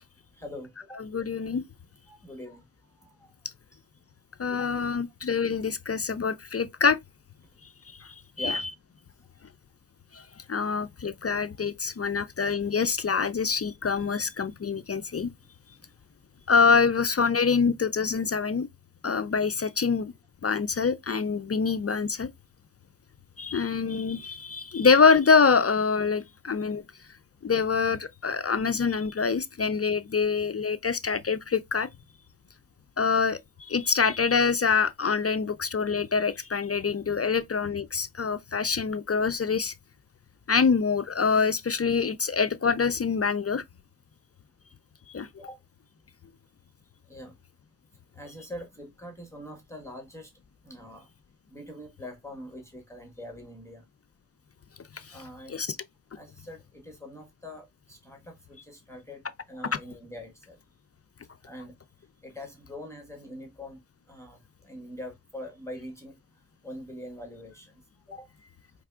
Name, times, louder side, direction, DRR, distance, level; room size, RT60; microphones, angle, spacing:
voice 1, 0.3-1.0 2.1-3.3 3.7-3.8 8.4-8.7 15.7-15.8 45.4-45.6 47.1-47.4 48.1-50.3 50.6-51.1 51.5-53.8 55.1-55.6 56.1-60.6 61.4-61.7 62.2-66.2 66.6-67.8 68.1-68.3, left 1 dB, 5° left, 1.3 m, -43 dB
voice 2, 1.0-1.6 4.4-7.0 8.0-8.1 8.4-8.6 10.1-10.2 10.5-15.3 16.5-18.7 19.0-20.1 20.4-22.3 23.4-26.8 27.4-31.9 33.0-39.7 40.5-43.6 45.1-45.3 55.1-55.2 55.5-55.8, left 5 dB, 35° left, 0.4 m, -25 dB
4.7 x 3.3 x 2.3 m
wide cardioid pair, 65°, 43 cm